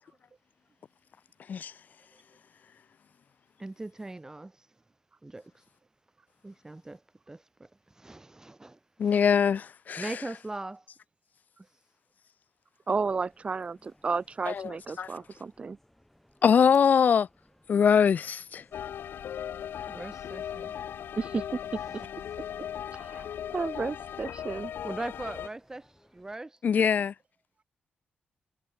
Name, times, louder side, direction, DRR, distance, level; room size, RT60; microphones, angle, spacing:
voice 1, 3.6-4.5 5.2-5.5 6.4-7.0 7.3-7.7 7.9-9.2 10.0-10.8 19.8-20.7 24.8-26.6, right 2 dB, 15° right, 4.2 m, -40 dB
voice 2, 9.0-10.1 14.5-14.6 15.0-15.1 16.4-17.3 17.7-18.6 26.6-27.1, left 7 dB, 50° left, 0.4 m, -22 dB
voice 3, 12.9-15.8 21.2-21.6 21.9-22.0 22.9-24.7, right 4 dB, 35° right, 1.0 m, -32 dB
sound 1, 13.1-26.4, left 1 dB, 5° left, 7.0 m, -63 dB
sound 2, 18.7-25.5, left 9 dB, 80° left, 0.8 m, -38 dB
cardioid pair, 115°, 4 cm